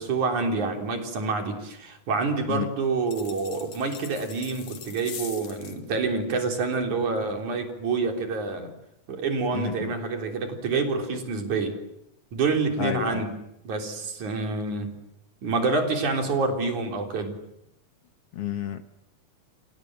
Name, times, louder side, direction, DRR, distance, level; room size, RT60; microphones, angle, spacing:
voice 1, 0.0-8.7 9.1-11.8 12.3-13.3 13.7-14.9 15.4-17.4, right 4 dB, 80° right, 4 dB, 5.1 m, -27 dB
sound 1, 3.1-5.8, left 7 dB, 85° left, 3.7 m, -42 dB
voice 2, 9.5-9.9 12.8-13.3 18.3-18.8, left 9 dB, 60° left, 9 dB, 2.0 m, -30 dB
29.5 x 25.5 x 7.6 m, 0.84 s
omnidirectional pair, 3.4 m